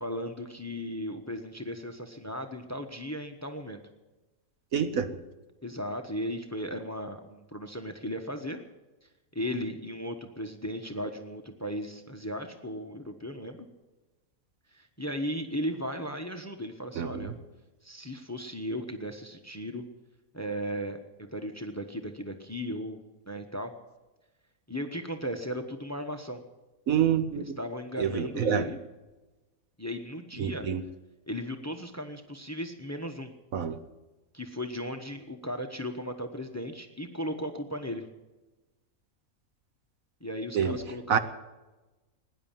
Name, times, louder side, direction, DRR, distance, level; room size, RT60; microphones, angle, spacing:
voice 1, 0.0-3.8 5.6-8.6 9.3-13.7 14.7-17.3 17.8-19.8 20.3-23.0 23.3-23.7 24.7-26.4 27.3-28.8 29.8-30.7 31.3-33.3 34.3-38.1 40.2-41.2, equal, 10° left, 7 dB, 1.0 m, -36 dB
voice 2, 4.7-5.2 17.0-17.3 26.9-27.6 28.0-28.7 30.4-30.8 33.5-33.8 40.5-40.8 41.1-41.2, right 8 dB, 70° right, 10 dB, 1.3 m, -27 dB
18.5 x 10.5 x 7.4 m, 1.1 s
omnidirectional pair, 1.5 m